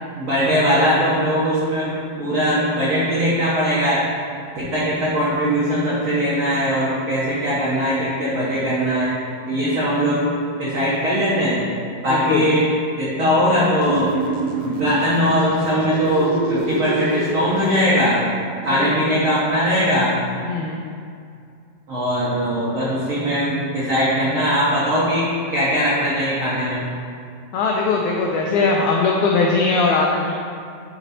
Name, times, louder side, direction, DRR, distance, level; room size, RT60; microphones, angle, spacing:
voice 1, 0.2-4.0 4.5-9.1 9.5-11.6 12.0-14.1 14.6-18.2 18.6-20.1 21.9-26.8, equal, 60° right, -9 dB, 1.4 m, -20 dB
voice 2, 12.1-12.5 18.7-18.9 20.5-20.8 27.5-30.4, left 4 dB, 85° left, -1 dB, 1.7 m, -20 dB
sound 1, 13.8-17.8, right 3 dB, 90° right, 1.5 m, -27 dB
8.5 x 4.0 x 4.2 m, 2.3 s
omnidirectional pair, 4.0 m